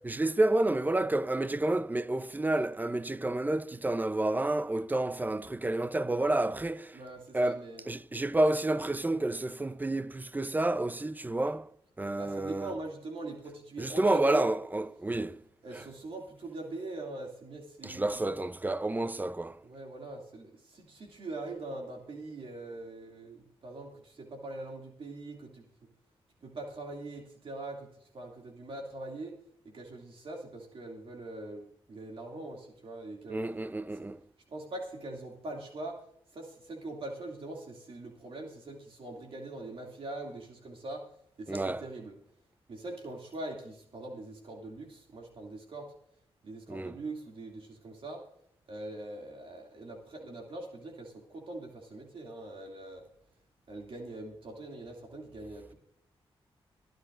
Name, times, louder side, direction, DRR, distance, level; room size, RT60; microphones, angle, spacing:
voice 1, 0.0-7.0 7.3-7.6 7.9-11.7 12.0-12.7 13.8-15.4 15.7-15.8 17.8-19.6 33.3-34.2 41.5-41.8 46.7-46.9, right 2 dB, 15° right, 0.7 m, -29 dB
voice 2, 6.9-7.8 12.2-14.5 15.6-18.2 19.6-25.6 26.4-29.4 29.7-33.4 33.9-34.1 34.5-36.0 36.3-41.0 41.4-42.2 42.7-45.9 46.4-48.2 48.7-53.0 53.7-55.7, right 2 dB, 60° right, 2.6 m, -42 dB
23.0 x 10.5 x 2.6 m
cardioid pair, 60°, 10 cm